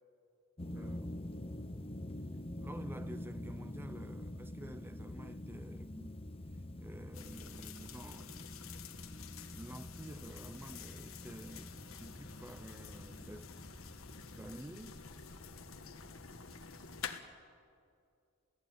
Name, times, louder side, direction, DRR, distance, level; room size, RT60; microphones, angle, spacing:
sound 1, 0.6-17.1, left 1 dB, 30° left, 0.9 m, -47 dB
voice 1, 0.7-1.3 2.6-6.2 6.8-8.4 9.5-13.5 14.4-15.0, right 1 dB, 10° right, 0.6 m, -50 dB
sound 2, 7.1-17.2, left 7 dB, 85° left, 1.5 m, -50 dB
27.5 x 16.5 x 9.3 m
head